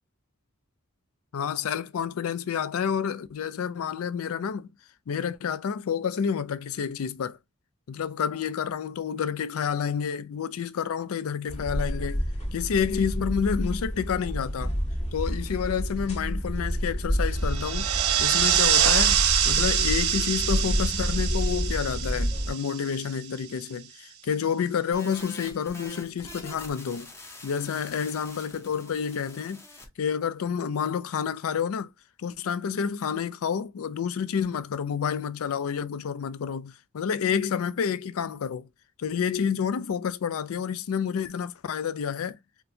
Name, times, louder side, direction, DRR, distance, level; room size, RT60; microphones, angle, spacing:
voice 1, 1.3-4.7 5.1-7.4 7.9-12.2 12.5-14.7 15.1-17.9 18.2-27.1 27.4-29.6 30.0-31.9 32.2-38.7 39.0-42.4, left 7 dB, 75° left, 0.4 m, -29 dB
sound 1, 11.5-22.5, equal, 35° left, 1.4 m, -29 dB
sound 2, 17.4-23.3, right 10 dB, 75° right, 0.4 m, -25 dB
sound 3, 24.9-29.9, left 1 dB, 15° left, 0.7 m, -44 dB
4.3 x 2.2 x 2.7 m
head